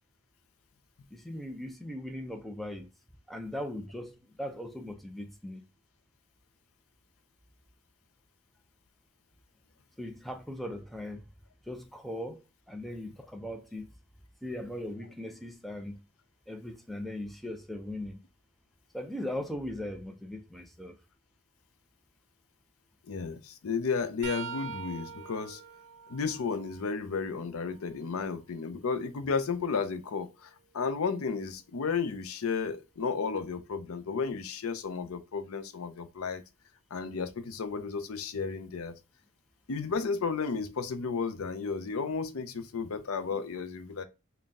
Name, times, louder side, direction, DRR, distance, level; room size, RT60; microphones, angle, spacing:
voice 1, 1.1-2.9 3.3-5.6 10.0-11.2 11.7-12.4 12.7-13.9 14.4-16.0 16.5-18.2 18.9-20.9, left 1 dB, ahead, 0.4 m, -39 dB
voice 2, 23.1-25.6 26.1-36.4 36.9-39.0 39.7-44.0, left 5 dB, 90° left, 0.5 m, -33 dB
sound 1, 24.2-28.0 28.5-30.5 33.4-33.6 34.8-35.0 36.3-36.4, right 7 dB, 65° right, 0.6 m, -46 dB
4.0 x 2.2 x 3.5 m
head